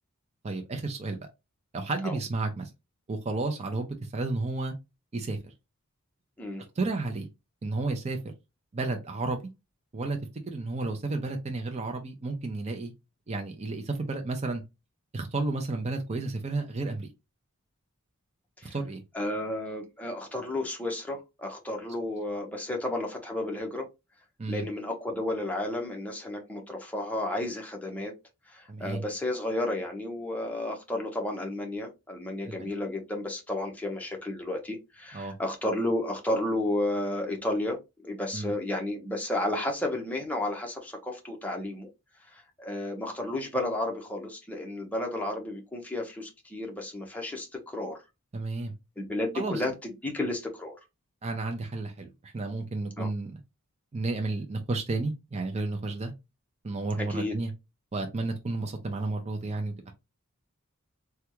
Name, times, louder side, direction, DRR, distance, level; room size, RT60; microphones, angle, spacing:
voice 1, 0.4-1.2 1.7-2.7 3.1-4.7 5.1-5.5 6.8-7.3 7.6-8.2 8.7-9.4 9.9-10.2 10.5-12.9 13.3-14.6 15.1-17.1 18.6-19.0 24.4-24.6 28.7-29.0 32.4-32.7 35.1-35.4 38.3-38.5 48.3-48.7 49.3-49.6 51.2-53.4 53.9-56.1 56.6-57.5 57.9-59.9, right 3 dB, 30° right, 0.5 m, -32 dB
voice 2, 19.1-23.9 24.5-28.1 28.5-41.9 42.3-48.0 49.0-50.7 53.0-53.1 57.0-57.3, left 1 dB, 5° left, 0.8 m, -32 dB
3.4 x 2.3 x 3.0 m
head